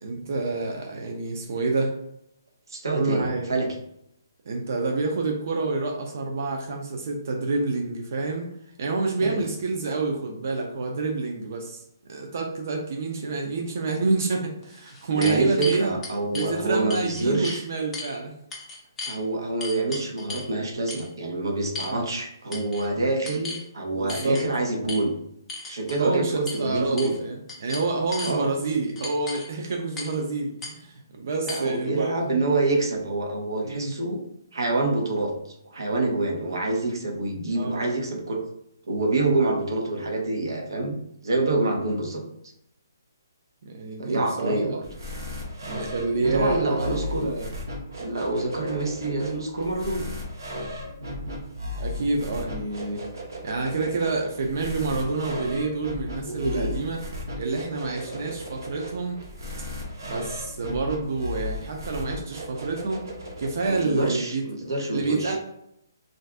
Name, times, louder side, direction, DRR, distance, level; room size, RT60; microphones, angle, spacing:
voice 1, 0.0-1.9 2.9-3.5 4.5-8.5 8.8-11.8 12.1-15.9 16.3-18.3 21.9-22.1 23.9-24.4 26.0-32.1 33.6-33.9 37.6-37.8 43.6-44.8 45.7-47.5 51.8-53.0 53.4-57.0 57.3-59.2 60.0-63.0 63.4-64.4 64.9-65.4, right 3 dB, 45° right, 1 dB, 0.5 m, -28 dB
voice 2, 2.7-3.7 9.2-9.4 15.1-17.6 19.0-25.1 25.7-27.1 28.2-28.5 31.5-34.2 34.5-35.3 35.6-38.4 38.9-42.2 44.0-44.8 46.2-47.3 48.0-50.1 56.3-56.8 58.0-58.4 63.7-65.4, right 2 dB, 90° right, 2 dB, 0.9 m, -27 dB
sound 1, 14.6-16.5 16.9-17.6 17.9-18.1 18.5-19.2 19.6-20.5 20.9-21.1 21.7-22.2 22.5-22.9 23.2-23.6 24.1-24.4 24.9-25.0 25.5-26.0 26.5-26.6 27.0-27.2 27.5-28.3 29.0-29.5 30.0-30.2 30.6-30.7 31.5-31.6, left 3 dB, 5° left, 0.4 m, -36 dB
sound 2, 44.8-64.0, left 1 dB, 65° right, 1.0 m, -36 dB
2.5 x 2.4 x 3.3 m, 0.77 s
hypercardioid pair, 175°, 2 cm